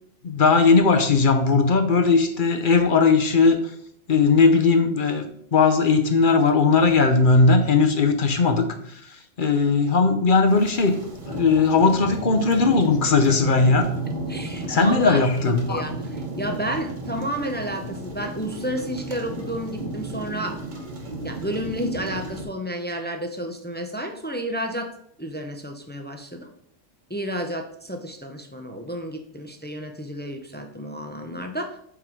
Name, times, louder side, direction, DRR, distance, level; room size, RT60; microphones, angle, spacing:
voice 1, 0.2-3.7 4.1-11.0 11.3-13.9 14.7-15.8, left 4 dB, 50° left, 6 dB, 0.8 m, -18 dB
sound 1, 10.5-22.4, right 2 dB, 40° right, 1.1 m, -34 dB
voice 2, 14.3-20.6 21.2-24.9 25.2-26.5 27.1-31.8, equal, 15° left, 4 dB, 0.3 m, -31 dB
5.7 x 4.8 x 4.6 m, 0.69 s
omnidirectional pair, 1.3 m